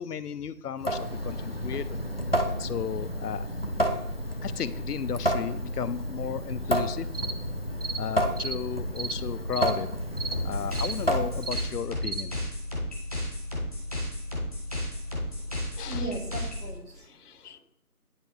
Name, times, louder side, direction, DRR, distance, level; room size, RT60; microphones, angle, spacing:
voice 1, 0.0-2.0 2.6-3.5 4.4-7.1 8.0-9.9 10.4-12.4 15.1-15.2 15.8-16.1 17.1-17.6, left 8 dB, 90° left, 15 dB, 0.6 m, -34 dB
Water tap faucet / Sink (filling or washing) / Drip, 0.8-11.7, equal, 45° left, 0.5 m, -31 dB
sound 1, 7.1-7.4 7.8-8.0 8.4-8.6 9.0-9.2 9.5-9.8 10.2-10.4 10.8-11.0 11.4-11.7 12.0-12.2, right 4 dB, 55° right, 0.6 m, -34 dB
sound 2, 10.3-16.7, left 1 dB, 25° right, 1.0 m, -33 dB
voice 2, 15.9-17.6, right 2 dB, 85° right, 1 dB, 2.2 m, -39 dB
9.7 x 3.5 x 4.2 m, 0.78 s
figure-of-eight pair, 175°, 45 cm